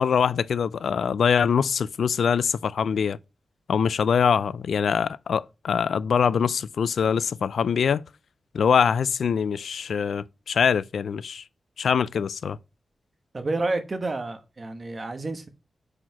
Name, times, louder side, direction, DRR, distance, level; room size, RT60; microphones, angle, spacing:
voice 1, 0.0-3.2 3.7-8.0 8.5-11.4 11.8-12.6, left 7 dB, 85° left, 0.3 m, -23 dB
voice 2, 13.3-15.5, right 2 dB, 30° right, 1.1 m, -29 dB
5.7 x 5.0 x 5.8 m
wide cardioid pair, 160°, 0 cm